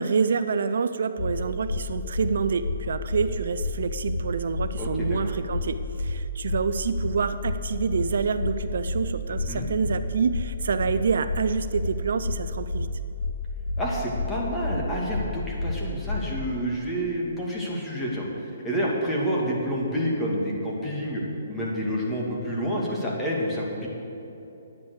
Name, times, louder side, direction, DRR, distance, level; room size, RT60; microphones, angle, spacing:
voice 1, 0.0-12.9, right 5 dB, 70° right, 11 dB, 0.5 m, -27 dB
sound 1, 1.2-1.3 1.6-1.8 2.1-2.3 2.6-2.8 3.1-3.2 3.6-3.7 4.0-4.2 4.5-4.7 5.0-5.2 5.5-5.6 6.0-6.1 6.4-6.6 6.9-7.1 7.4-7.6 7.9-8.0 8.4-8.5 8.8-9.0 9.3-9.5 9.8-10.0 10.3-10.4 10.8-10.9 11.2-11.4 11.7-11.9 12.2-12.4 12.7-12.8 13.2-13.3 13.6-13.8 14.1-14.3 14.6-14.8 15.1-15.2 15.6-15.7 16.0-16.2, left 3 dB, 40° left, 1.9 m, -28 dB
voice 2, 4.8-5.2 9.3-9.7 13.8-23.9, equal, 10° left, -4 dB, 2.4 m, -29 dB
10.5 x 9.5 x 6.5 m, 2.9 s
hypercardioid pair, 145°, 0 cm